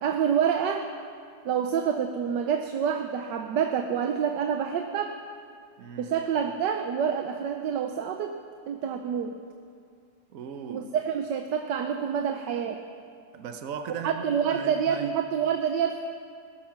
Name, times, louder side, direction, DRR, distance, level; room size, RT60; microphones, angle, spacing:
voice 1, 0.0-0.9 1.4-5.2 6.0-8.4 8.7-9.4 10.7-12.8 14.0-16.0, right 7 dB, 85° right, 6 dB, 1.4 m, -27 dB
voice 2, 5.8-6.1 10.3-10.9 13.3-15.2, right 6 dB, 55° right, 8 dB, 1.2 m, -38 dB
19.0 x 12.0 x 5.9 m, 2.3 s
omnidirectional pair, 1.9 m